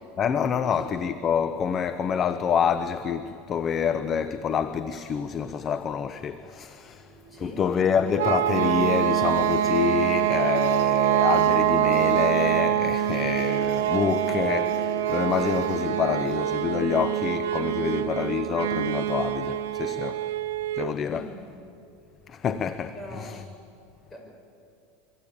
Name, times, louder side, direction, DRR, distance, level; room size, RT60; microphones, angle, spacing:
voice 1, 0.2-7.1 7.4-20.2 20.8-21.3 22.3-23.4, left 7 dB, 30° left, 0.9 m, -27 dB
sound 1, 6.9-16.4, right 6 dB, 65° right, 7.8 m, -39 dB
voice 2, 7.3-7.6 17.8-18.0 21.1-21.5 22.9-23.4 24.1-24.2, equal, 15° left, 6.5 m, -42 dB
sound 2, 8.2-21.0, right 12 dB, 90° right, 0.9 m, -25 dB
26.5 x 24.5 x 8.8 m
supercardioid pair, 135°, 0 cm